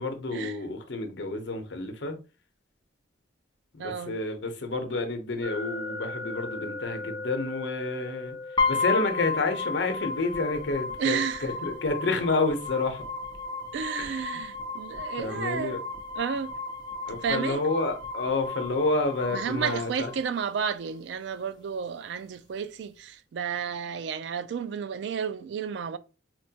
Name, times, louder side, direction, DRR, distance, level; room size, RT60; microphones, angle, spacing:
voice 1, 0.0-2.2 3.7-8.4 8.7-13.0 14.0-14.2 15.2-15.8 17.1-20.1, left 3 dB, 75° left, 0.7 m, -29 dB
voice 2, 3.8-4.2 11.0-11.5 13.7-15.8 16.2-16.5 17.1-17.6 19.3-26.0, right 7 dB, 70° right, 0.3 m, -32 dB
sound 1, 5.4-18.3, left 3 dB, 10° right, 0.8 m, -42 dB
sound 2, 8.6-20.6, left 4 dB, 25° left, 0.6 m, -33 dB
4.4 x 2.2 x 2.8 m
head